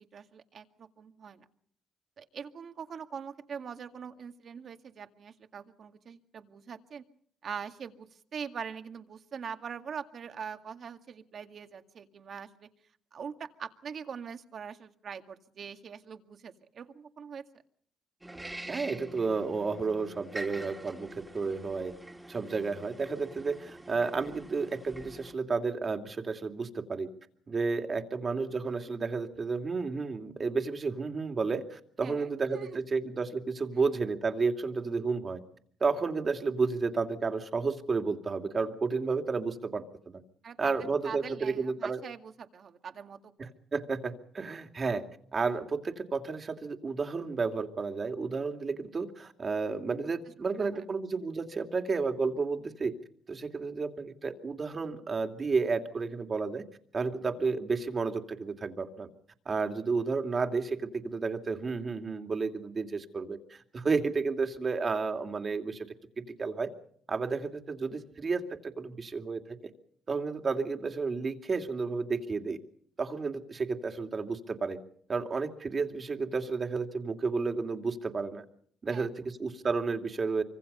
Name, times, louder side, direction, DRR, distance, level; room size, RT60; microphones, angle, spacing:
voice 1, 0.1-1.4 2.2-7.0 7.4-12.7 13.1-17.4 32.0-32.8 40.4-43.5 50.6-50.8 78.9-79.1, right 7 dB, 55° right, 7 dB, 2.0 m, -43 dB
sound 1, 18.2-25.3, right 1 dB, 10° right, 2.2 m, -45 dB
voice 2, 18.7-21.9 22.3-27.1 27.5-35.4 35.8-40.2 40.6-42.0 43.4-45.0 45.3-52.9 53.3-56.6 56.9-59.1 59.5-66.7 67.1-69.4 70.1-72.6 73.0-74.8 75.1-78.4 78.8-80.4, right 4 dB, 40° right, 6 dB, 2.7 m, -32 dB
25.0 x 25.0 x 5.6 m, 0.62 s
cardioid pair, 90°, 0 cm